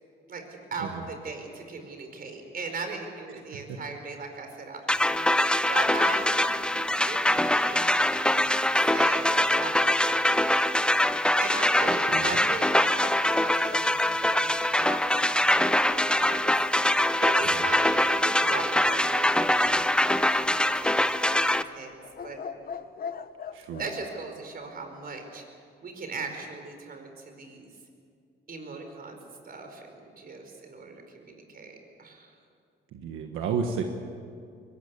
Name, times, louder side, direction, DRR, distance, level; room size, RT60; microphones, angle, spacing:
voice 1, 0.3-10.8 11.4-16.6 17.2-21.9 22.2-22.4 23.8-25.4 25.8-27.7 28.5-29.1 29.4-32.3, right 4 dB, 50° right, 5 dB, 5.0 m, -39 dB
sound 1, 4.9-21.6, left 1 dB, 5° left, 0.7 m, -23 dB
sound 2, 11.3-13.9 19.3-20.2 21.2-24.0, left 6 dB, 45° left, 1.2 m, -42 dB
voice 2, 23.5-23.8 32.9-33.8, right 6 dB, 90° right, 4 dB, 1.5 m, -31 dB
22.5 x 20.5 x 8.4 m, 2.3 s
cardioid pair, 90°, 20 cm